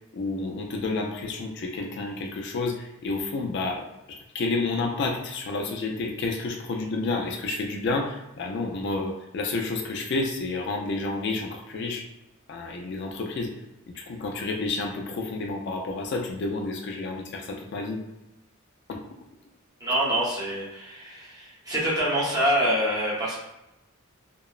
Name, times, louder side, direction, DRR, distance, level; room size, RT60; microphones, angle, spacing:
voice 1, 0.1-12.0 12.5-13.5 14.0-18.0 18.9-19.0, left 3 dB, 55° left, 2 dB, 0.3 m, -30 dB
voice 2, 19.8-23.4, equal, 20° right, -6 dB, 0.8 m, -26 dB
2.8 x 2.0 x 2.3 m, 0.91 s
head